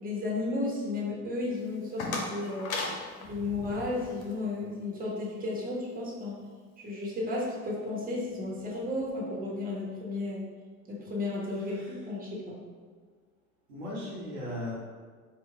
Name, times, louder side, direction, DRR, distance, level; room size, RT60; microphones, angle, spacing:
voice 1, 0.0-2.7 3.2-6.4 6.8-10.4 10.9-12.6, left 2 dB, 20° right, -4 dB, 1.1 m, -33 dB
sound 1, 1.6-4.3, left 3 dB, 75° left, 0.8 m, -37 dB
voice 2, 3.2-3.8 11.5-12.0 13.7-14.7, left 1 dB, 80° right, -6 dB, 1.3 m, -39 dB
4.6 x 2.3 x 3.4 m, 1.6 s
hypercardioid pair, 70°, 42 cm